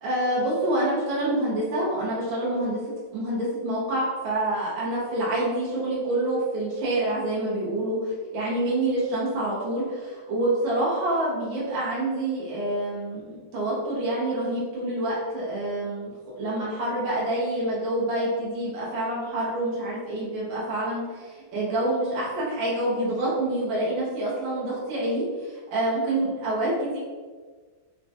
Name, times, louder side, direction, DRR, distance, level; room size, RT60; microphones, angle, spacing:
voice 1, 0.0-2.8 3.1-27.0, right 1 dB, 80° right, -7 dB, 1.6 m, -27 dB
4.2 x 2.2 x 2.7 m, 1.5 s
omnidirectional pair, 2.1 m